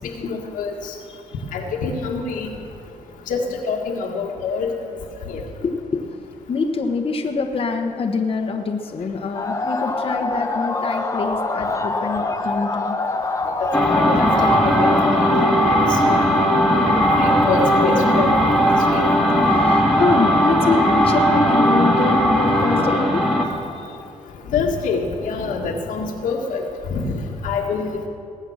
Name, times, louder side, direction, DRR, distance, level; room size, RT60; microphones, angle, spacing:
voice 1, 0.2-0.9 1.5-2.5 3.3-4.7 5.3-5.4 13.6-15.0 15.7-16.2 16.9-18.6 18.9-19.0 24.5-28.0, left 4 dB, 85° left, 1 dB, 1.8 m, -26 dB
voice 2, 5.6-6.0 6.5-13.0 17.1-17.2 19.0-24.0, left 4 dB, 45° left, 2 dB, 1.2 m, -25 dB
sound 1, 9.3-15.5, left 3 dB, 25° left, 1.1 m, -25 dB
sound 2, 13.7-23.5, equal, ahead, 2.1 m, -17 dB
20.0 x 8.0 x 6.4 m, 2.6 s
cardioid pair, 95°, 13 cm